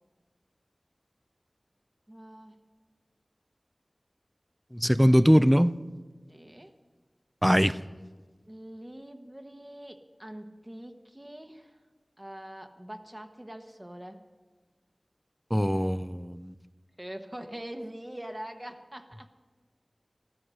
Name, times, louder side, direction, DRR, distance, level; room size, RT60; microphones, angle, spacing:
voice 1, 2.1-2.6 4.9-5.1 6.3-6.7 8.5-11.8 12.2-14.2 17.0-19.3, right 1 dB, 25° right, 1.2 m, -43 dB
voice 2, 4.7-5.8 7.4-7.8 15.5-16.5, equal, ahead, 0.4 m, -22 dB
14.5 x 13.0 x 6.4 m
wide cardioid pair, 45°, 0 cm